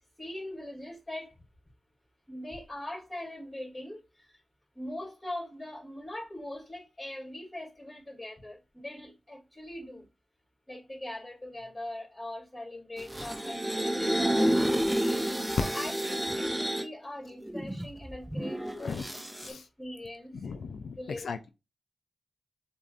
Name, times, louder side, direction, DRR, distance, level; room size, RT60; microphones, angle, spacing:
voice 1, 0.2-1.3 2.3-4.4 4.8-10.1 10.7-14.5 15.5-19.2 19.5-20.5 21.0-21.3, left 1 dB, 20° left, 2.5 m, -41 dB
sound 1, 13.0-16.9 17.4-19.5, right 1 dB, 10° right, 0.6 m, -30 dB
voice 2, 18.7-19.0 19.4-19.6 20.4-21.5, left 5 dB, 80° left, 0.4 m, -38 dB
6.6 x 2.6 x 2.5 m
cardioid pair, 45°, 0 cm